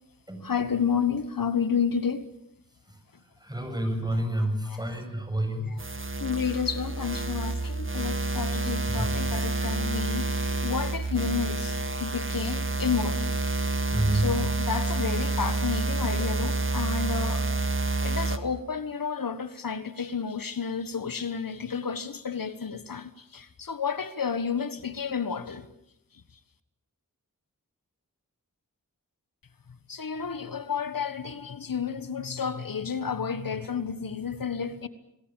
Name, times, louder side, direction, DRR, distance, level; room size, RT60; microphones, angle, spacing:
voice 1, 0.4-2.3 4.4-4.8 5.7-5.8 6.2-13.3 14.1-17.4 18.0-25.6 29.9-34.9, left 6 dB, 85° left, 1.4 m, -31 dB
voice 2, 3.4-5.7 9.0-9.1 13.9-14.3 16.2-16.4, right 1 dB, 10° right, 7.6 m, -28 dB
sound 1, 5.8-18.4, right 2 dB, 40° right, 1.9 m, -28 dB
27.5 x 20.0 x 9.0 m
wide cardioid pair, 65°, 33 cm